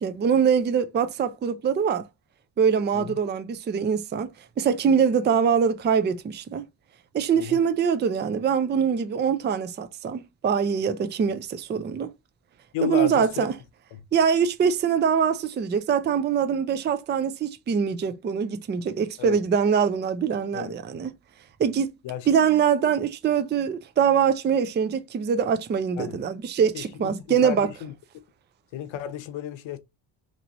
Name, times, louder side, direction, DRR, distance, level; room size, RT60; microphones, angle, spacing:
voice 1, 0.0-2.1 2.6-6.6 7.1-12.1 12.8-13.5 14.1-21.2 21.6-21.9 22.3-27.7, right 7 dB, 25° right, 0.4 m, -23 dB
voice 2, 12.7-13.5 13.9-14.0 19.2-19.4 20.5-20.7 22.0-22.3 26.0-26.2 26.7-27.9 28.7-29.8, left 10 dB, 70° left, 0.8 m, -33 dB
3.0 x 3.0 x 2.5 m
cardioid pair, 105°, 48 cm